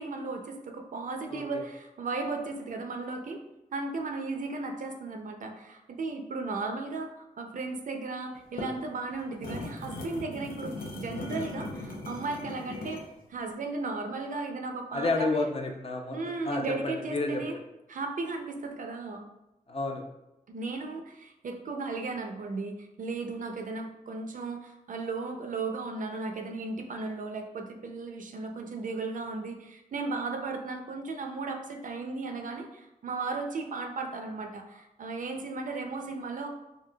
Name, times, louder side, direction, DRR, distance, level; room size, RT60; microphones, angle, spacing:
voice 1, 0.0-3.4 3.7-13.0 13.3-15.3 16.1-17.6 17.9-19.2 20.5-36.5, right 3 dB, 60° right, 4 dB, 0.4 m, -35 dB
sound 1, 8.3-13.1, left 2 dB, 85° left, 0.6 m, -38 dB
voice 2, 14.9-16.6 17.1-17.4 19.7-20.0, left 2 dB, 40° left, 3 dB, 0.5 m, -30 dB
3.8 x 2.5 x 2.2 m, 0.93 s
wide cardioid pair, 85°, 15 cm